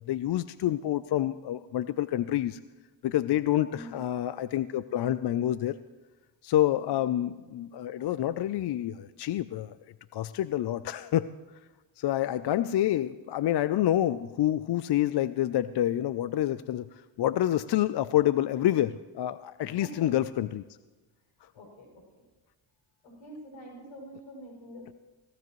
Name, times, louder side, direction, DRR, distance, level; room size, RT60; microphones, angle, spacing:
voice 1, 0.0-2.6 3.0-5.8 6.4-9.8 10.1-11.3 12.0-20.6, left 13 dB, 55° left, 14 dB, 0.5 m, -28 dB
voice 2, 3.7-4.0 6.7-7.1 19.6-20.1 21.5-22.2 23.0-25.0, equal, 85° left, 0 dB, 6.3 m, -46 dB
18.5 x 17.5 x 3.1 m, 1.2 s
cardioid pair, 85°, 49 cm